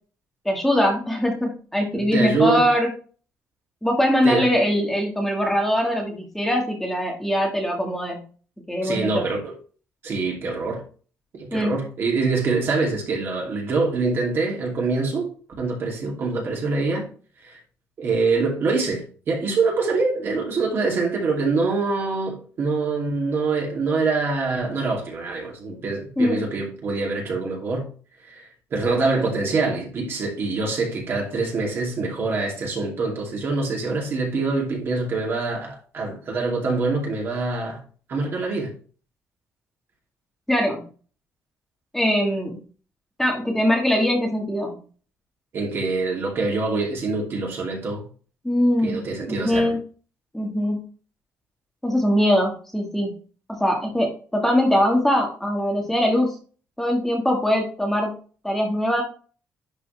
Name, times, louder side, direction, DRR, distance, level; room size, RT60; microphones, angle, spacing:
voice 1, 0.4-2.9 3.8-8.2 8.7-9.2 11.5-11.7 26.2-26.4 40.5-40.8 41.9-42.5 43.2-44.8 48.4-49.0 49.3-49.8 50.3-50.8 51.8-53.1 53.5-56.3 56.8-58.1 58.4-59.0, equal, 5° left, 1.5 m, -22 dB
voice 2, 1.9-2.7 4.2-4.5 8.8-9.5 10.0-10.8 11.3-15.3 15.6-17.1 17.4-17.6 18.0-27.9 28.3-37.8 38.1-38.7 45.5-48.0 48.8-49.7, right 3 dB, 50° right, 2.5 m, -25 dB
11.0 x 4.1 x 3.3 m
cardioid pair, 150°, 5 cm